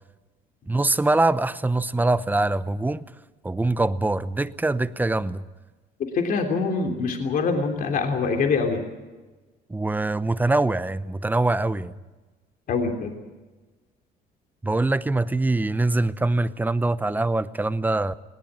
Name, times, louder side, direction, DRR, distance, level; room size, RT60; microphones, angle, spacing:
voice 1, 0.7-3.0 3.4-5.4 9.7-11.9 14.6-18.1, right 2 dB, 10° right, 14 dB, 0.8 m, -23 dB
voice 2, 6.1-8.8 12.7-13.1, left 4 dB, 55° left, 4 dB, 3.2 m, -24 dB
20.0 x 19.0 x 8.7 m, 1.2 s
cardioid pair, 110°, 17 cm